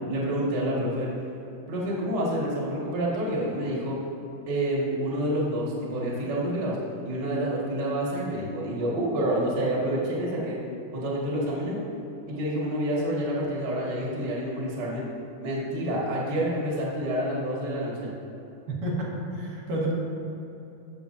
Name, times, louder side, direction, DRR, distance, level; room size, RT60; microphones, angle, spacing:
voice 1, 0.1-1.1 1.7-3.9 4.5-6.8 7.0-10.6 10.9-11.8 12.3-15.0 15.4-18.1, right 1 dB, 40° right, -5 dB, 1.8 m, -28 dB
voice 2, 18.7-19.9, right 1 dB, 75° right, -5 dB, 3.0 m, -30 dB
15.0 x 6.4 x 2.6 m, 2.8 s
omnidirectional pair, 3.8 m